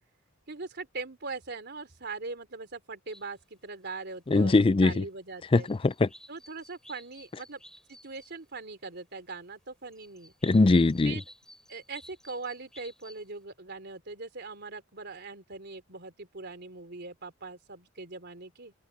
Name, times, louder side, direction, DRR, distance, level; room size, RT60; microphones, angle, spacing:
voice 1, 0.5-5.7 6.3-7.6 7.9-10.3 11.0-11.2 11.7-18.7, right 3 dB, 55° right, 3.5 m, -41 dB
sound 1, 3.1-3.4 4.4-4.5 5.0-5.3 5.6-8.6 9.2-9.3 9.9-13.3, left 1 dB, 5° left, 4.5 m, -54 dB
voice 2, 4.3-5.0 5.5-6.1 10.4-11.1, left 3 dB, 25° left, 0.4 m, -21 dB
head